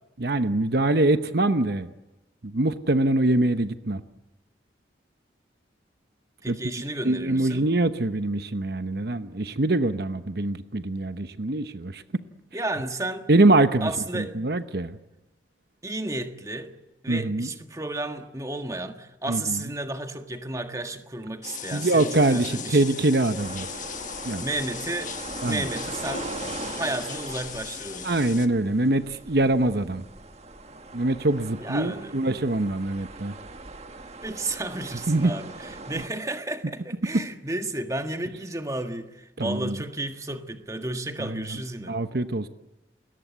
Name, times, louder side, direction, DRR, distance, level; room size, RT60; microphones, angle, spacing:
voice 1, 0.2-1.9 2.4-4.0 6.5-6.6 7.0-12.0 13.3-15.0 17.1-17.5 19.3-19.6 21.7-23.7 24.2-24.4 25.4-25.6 28.0-30.0 30.9-33.3 35.1-35.3 37.1-37.2 39.4-39.8 41.2-41.6 41.9-42.5, right 2 dB, 60° right, 1.0 m, -24 dB
voice 2, 6.4-7.7 12.5-13.3 13.8-14.4 15.8-16.7 17.0-22.8 24.4-25.1 25.4-26.3 26.8-28.1 31.6-32.1 34.2-42.0, right 2 dB, 20° right, 1.6 m, -32 dB
sound 1, 21.4-28.5, left 7 dB, 45° left, 1.5 m, -38 dB
sound 2, 23.4-36.1, right 2 dB, 35° right, 1.6 m, -40 dB
29.0 x 21.5 x 8.2 m
head